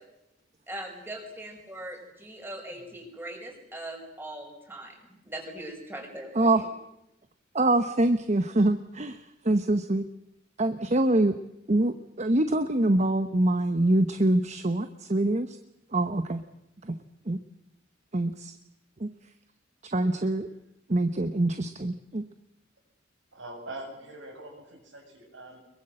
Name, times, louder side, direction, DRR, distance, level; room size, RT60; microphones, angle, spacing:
voice 1, 0.7-4.9 5.2-6.3, right 1 dB, 10° right, 2 dB, 5.5 m, -40 dB
voice 2, 6.3-6.7 7.5-10.0 10.6-11.3 11.7-15.6 15.9-16.4 16.8-16.9 17.3-17.4 18.1-18.5 19.0-19.1 19.8-20.5 20.9-22.2, right 1 dB, 35° right, 10 dB, 1.0 m, -25 dB
voice 3, 23.3-25.6, right 2 dB, 80° right, 2 dB, 7.1 m, -43 dB
23.5 x 22.5 x 7.8 m, 0.86 s
head